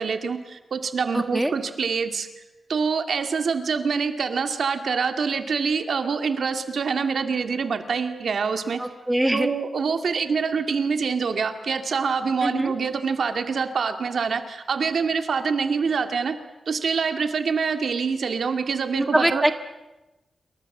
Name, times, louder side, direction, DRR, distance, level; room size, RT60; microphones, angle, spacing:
voice 1, 0.0-2.3 2.7-8.8 9.3-16.4 16.7-19.4, right 5 dB, 65° right, 7 dB, 2.2 m, -25 dB
voice 2, 1.1-1.5 8.8-9.5 12.4-12.7 18.9-19.5, right 1 dB, 5° right, 8 dB, 1.4 m, -23 dB
28.0 x 24.0 x 7.3 m, 1.0 s
wide cardioid pair, 130°, 0 cm